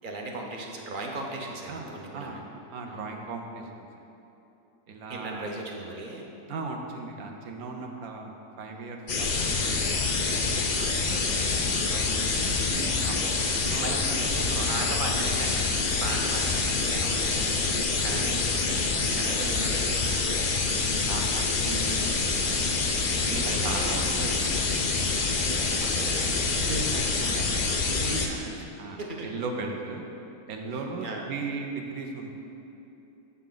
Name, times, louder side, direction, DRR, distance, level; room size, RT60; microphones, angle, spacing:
voice 1, 0.0-2.4 2.8-3.0 5.1-6.3 10.8-12.7 13.1-13.4 13.8-20.5 23.2-23.9 25.0-26.4 28.3-28.6 29.0-29.3 31.0-31.3, right 2 dB, 55° right, 0 dB, 0.6 m, -38 dB
voice 2, 1.7-2.4 2.7-3.9 4.9-5.5 6.5-8.3 8.6-10.0 12.7-13.2 13.4-14.9 15.2-15.4 18.1-18.4 21.0-22.8 23.2-24.6 26.6-28.4 28.8-30.1 30.5-32.3, right 3 dB, 70° right, 2 dB, 1.2 m, -37 dB
sound 1, 9.1-28.3, left 4 dB, 75° left, 0.4 m, -26 dB
7.2 x 7.0 x 3.8 m, 3.0 s
omnidirectional pair, 1.6 m